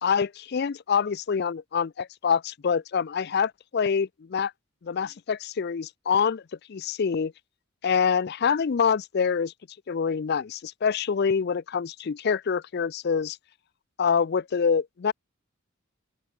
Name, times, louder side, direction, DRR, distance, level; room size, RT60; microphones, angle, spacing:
voice 1, 0.0-4.5 4.8-6.4 6.7-7.3 7.8-9.5 9.9-13.4 14.0-15.1, left 6 dB, 50° left, 0.4 m, -26 dB
open air
head